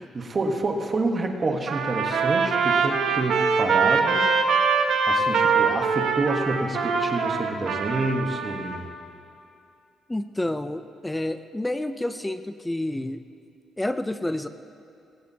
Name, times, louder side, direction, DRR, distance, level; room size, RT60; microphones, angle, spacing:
voice 1, 0.0-4.3 5.1-8.9, right 2 dB, 25° right, 3 dB, 1.0 m, -28 dB
Trumpet, 1.7-8.8, right 5 dB, 65° right, 1.1 m, -23 dB
voice 2, 10.1-13.2 13.8-14.5, left 1 dB, 5° left, 10 dB, 0.4 m, -29 dB
18.5 x 18.0 x 2.7 m, 2.6 s
cardioid pair, 170°, 0 cm